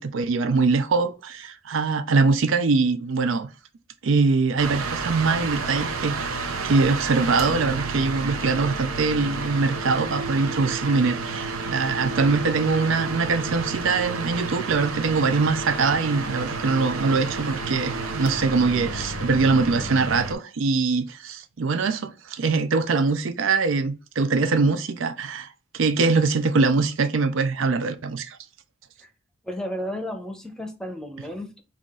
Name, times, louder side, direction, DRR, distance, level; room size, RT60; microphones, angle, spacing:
voice 1, 0.0-3.5 4.0-25.5 25.7-28.4, right 4 dB, 65° right, 0.5 m, -23 dB
sound 1, 4.6-20.3, right 4 dB, 90° right, 0.8 m, -31 dB
voice 2, 29.4-31.6, equal, 5° left, 0.7 m, -33 dB
5.7 x 2.4 x 3.6 m
head